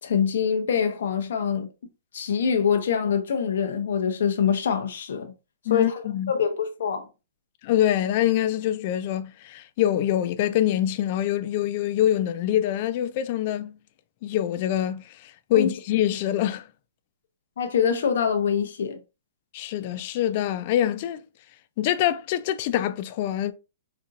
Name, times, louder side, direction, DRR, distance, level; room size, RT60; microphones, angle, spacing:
voice 1, 0.0-1.7 2.1-5.3 5.7-7.1 15.5-15.7 17.6-19.0, left 7 dB, 65° left, 0.8 m, -24 dB
voice 2, 5.7-6.3 7.6-13.7 14.2-16.6 19.5-21.2 21.8-23.5, left 12 dB, 35° left, 0.3 m, -25 dB
4.3 x 2.7 x 2.4 m
hypercardioid pair, 170°, 0 cm